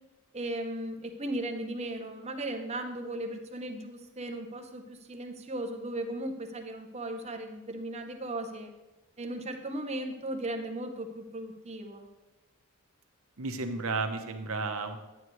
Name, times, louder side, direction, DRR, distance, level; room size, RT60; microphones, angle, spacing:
voice 1, 0.3-8.7 9.2-12.1, right 1 dB, 30° right, 5 dB, 0.8 m, -37 dB
voice 2, 13.4-15.0, right 3 dB, 70° right, 6 dB, 0.9 m, -32 dB
11.0 x 8.2 x 3.1 m, 1.1 s
head